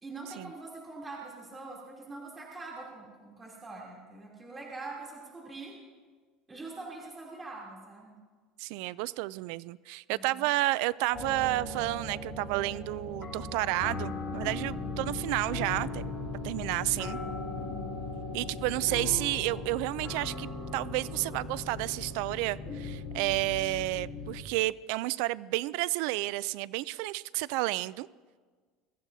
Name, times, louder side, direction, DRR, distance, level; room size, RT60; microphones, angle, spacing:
voice 1, 0.0-5.8 6.5-8.1 10.1-10.5 14.4-14.8 17.6-17.9, right 3 dB, 20° right, -3 dB, 3.0 m, -44 dB
voice 2, 8.6-16.0 16.4-17.2 18.3-28.1, right 19 dB, 75° right, 19 dB, 0.3 m, -31 dB
sound 1, 11.1-24.4, left 3 dB, 25° left, 4.4 m, -38 dB
23.0 x 14.5 x 2.7 m, 1.5 s
supercardioid pair, 135°, 0 cm